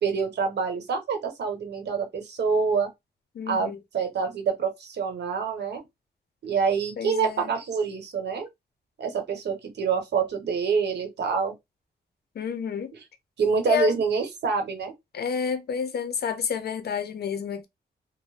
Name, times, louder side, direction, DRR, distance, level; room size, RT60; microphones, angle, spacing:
voice 1, 0.0-2.9 3.5-5.8 6.4-8.5 9.0-11.5 13.4-14.9, right 5 dB, 80° right, 0.9 m, -26 dB
voice 2, 3.3-3.8 7.0-7.5 12.4-12.9 13.7-13.9 15.1-17.7, left 7 dB, 65° left, 0.6 m, -29 dB
2.6 x 2.0 x 3.2 m
cardioid pair, 85°, 17 cm